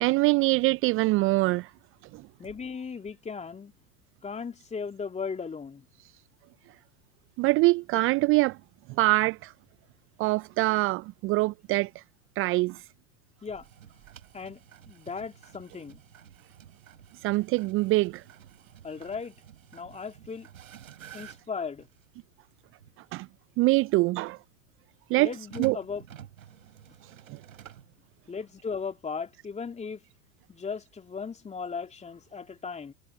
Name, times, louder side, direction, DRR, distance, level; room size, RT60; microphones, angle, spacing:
voice 1, 0.0-1.7 2.1-2.2 7.4-8.6 9.0-9.5 10.2-12.0 12.4-12.8 17.2-18.2 23.1-23.3 23.6-24.4 25.1-25.3 25.6-25.8 27.3-27.4, right 21 dB, 30° right, 0.5 m, -24 dB
voice 2, 2.4-3.7 4.2-5.8 13.4-13.7 14.3-14.6 14.9-16.0 18.8-19.3 19.7-20.5 21.1-21.9 25.2-26.0 28.3-30.0 30.5-32.9, left 5 dB, 15° left, 2.9 m, -37 dB
sound 1, 13.6-22.1 22.8-22.9 25.3-28.0, right 10 dB, 75° right, 5.4 m, -50 dB
hypercardioid pair, 90°, 41 cm